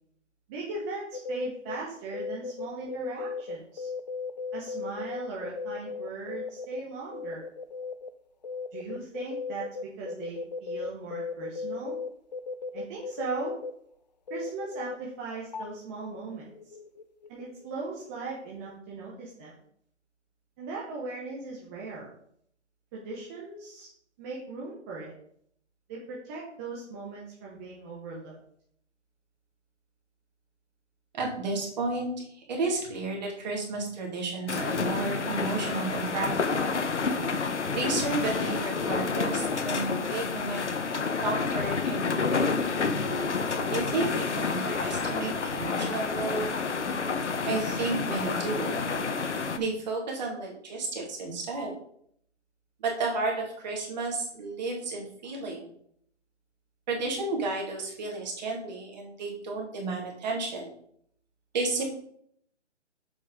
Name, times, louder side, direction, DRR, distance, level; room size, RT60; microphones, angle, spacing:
voice 1, 0.5-3.9 4.5-7.4 8.7-12.0 12.7-13.5 14.3-16.5 17.3-19.5 20.6-22.1 22.9-23.9 24.2-25.1 25.9-28.4, right 3 dB, 10° right, -4 dB, 0.7 m, -38 dB
sound 1, 1.1-1.8 2.1-6.8 7.1-8.1 8.4-13.7 14.3-15.0 15.3-17.7 18.0-18.4 18.7-18.8, left 4 dB, 35° left, 0.5 m, -36 dB
voice 2, 31.1-32.1 32.5-36.3 36.5-36.8 37.7-40.6 41.2-42.5 43.7-46.5 47.5-48.8 49.6-51.7 52.8-55.7 56.9-60.7 61.5-61.8, right 3 dB, 35° right, 0 dB, 2.5 m, -32 dB
sound 2, 34.5-49.6, left 4 dB, 70° left, 1.1 m, -29 dB
7.3 x 5.4 x 5.1 m, 0.67 s
figure-of-eight pair, 145°, 36 cm